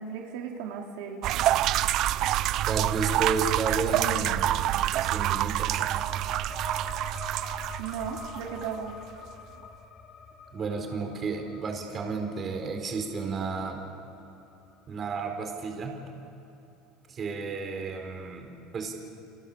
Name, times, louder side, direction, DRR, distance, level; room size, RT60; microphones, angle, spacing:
voice 1, 0.0-1.4 7.8-8.9, right 7 dB, 75° right, 1 dB, 3.1 m, -36 dB
sound 1, 1.2-8.8, right 13 dB, 50° right, 0.7 m, -27 dB
voice 2, 2.6-4.7 5.0-5.9 10.5-13.8 14.9-16.0 17.1-18.9, right 4 dB, 30° right, 4 dB, 4.1 m, -32 dB
sound 2, 5.0-16.1, left 6 dB, 30° left, 1.5 m, -47 dB
30.0 x 26.5 x 7.4 m, 2.9 s
cardioid pair, 145°, 0 cm